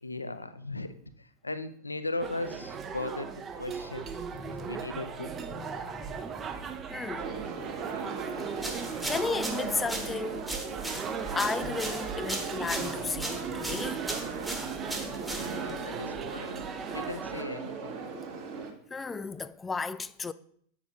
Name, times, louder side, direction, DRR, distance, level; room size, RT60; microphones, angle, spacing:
voice 1, 0.0-3.3 3.6-4.2 4.5-5.3 8.7-8.8 10.3-10.4 15.3-18.0 18.5-18.6, left 2 dB, 80° left, 0.5 m, -38 dB
sound 1, 2.2-17.4, right 6 dB, 25° right, 0.6 m, -38 dB
voice 2, 4.4-4.8 5.5-6.2 6.9-7.3 8.2-8.4 9.1-10.5 11.4-14.1 18.9-20.3, left 4 dB, 15° left, 0.3 m, -34 dB
sound 2, 7.2-18.7, right 5 dB, 40° right, 1.5 m, -38 dB
sound 3, 8.6-15.8, right 2 dB, 5° right, 1.2 m, -38 dB
8.7 x 7.0 x 2.5 m
figure-of-eight pair, 90°, 0 cm